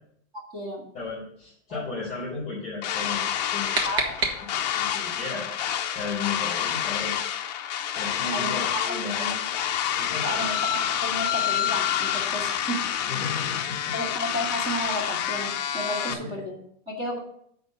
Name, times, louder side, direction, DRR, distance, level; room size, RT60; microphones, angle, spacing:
voice 1, 0.3-0.8 1.7-1.8 3.8-4.2 8.3-9.0 10.2-12.8 13.9-16.5 16.9-17.2, equal, 15° right, -1 dB, 1.3 m, -32 dB
voice 2, 0.9-3.2 3.5-3.7 4.7-5.6 5.9-7.1 8.0-9.4 10.0-10.5 13.1-14.0 16.2-16.4, left 4 dB, 20° left, -7 dB, 3.7 m, -34 dB
sound 1, 2.8-16.1, left 10 dB, 35° left, 0.6 m, -28 dB
sound 2, 3.2-4.9, right 3 dB, 60° right, 1.7 m, -30 dB
9.7 x 3.8 x 6.5 m, 0.69 s
supercardioid pair, 175°, 36 cm